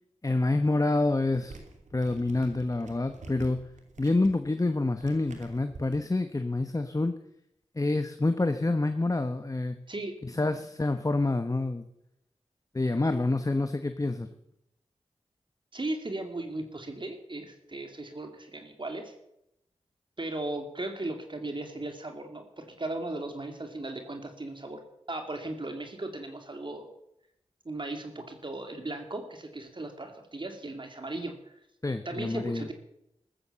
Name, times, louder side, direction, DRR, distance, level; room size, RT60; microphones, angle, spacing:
voice 1, 0.2-1.6 1.9-3.6 4.0-7.2 7.7-9.8 10.2-11.8 12.7-14.3 31.8-32.7, left 2 dB, 30° left, 9 dB, 1.2 m, -27 dB
sound 1, 1.3-6.0, right 2 dB, 90° right, 2.8 m, -48 dB
voice 2, 9.9-10.6 15.7-19.1 20.2-24.8 25.1-26.9 27.6-31.6 32.0-32.7, right 2 dB, 40° right, 5 dB, 2.6 m, -37 dB
14.5 x 14.0 x 7.0 m, 0.80 s
cardioid pair, 45°, 12 cm